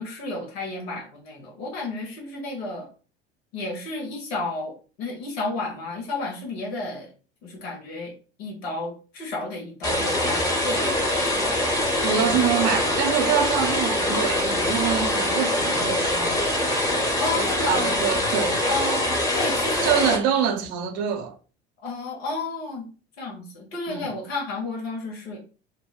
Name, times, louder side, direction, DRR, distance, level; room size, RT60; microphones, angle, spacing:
voice 1, 0.0-2.9 3.5-7.1 7.4-8.1 8.4-11.5 12.2-12.4 17.2-17.9 18.7-20.0 21.8-22.9 23.2-25.4, left 3 dB, 70° left, 1.0 m, -32 dB
sound 1, 9.8-20.2, left 1 dB, 10° left, 0.8 m, -24 dB
voice 2, 12.0-16.5 17.4-18.7 19.8-21.3 23.9-24.1, right 8 dB, 50° right, 0.6 m, -25 dB
2.6 x 2.0 x 2.3 m
figure-of-eight pair, 70°, 32 cm